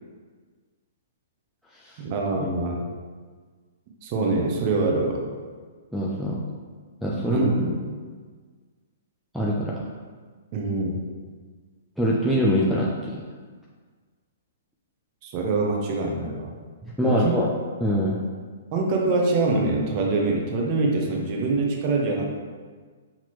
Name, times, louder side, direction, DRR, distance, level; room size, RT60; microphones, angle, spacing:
voice 1, 2.0-2.8 4.0-5.2 7.3-7.7 10.5-11.0 15.2-16.5 17.0-17.3 18.7-22.2, right 3 dB, 35° right, 0 dB, 0.7 m, -24 dB
voice 2, 5.9-6.4 7.0-7.5 9.3-9.7 12.0-13.2 16.8-17.5 17.8-18.2, equal, ahead, -6 dB, 0.4 m, -23 dB
5.9 x 2.9 x 3.0 m, 1.5 s
hypercardioid pair, 155°, 0 cm